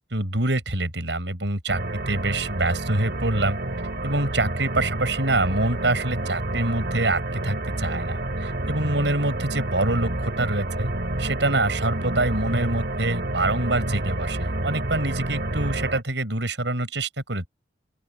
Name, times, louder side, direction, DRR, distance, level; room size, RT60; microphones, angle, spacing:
voice 1, 0.0-1.8 2.1-3.6 4.0-10.9 11.2-17.5, right 2 dB, 90° right, 6.2 m, -25 dB
sound 1, 1.7-16.0, right 1 dB, 65° right, 2.3 m, -29 dB
open air
head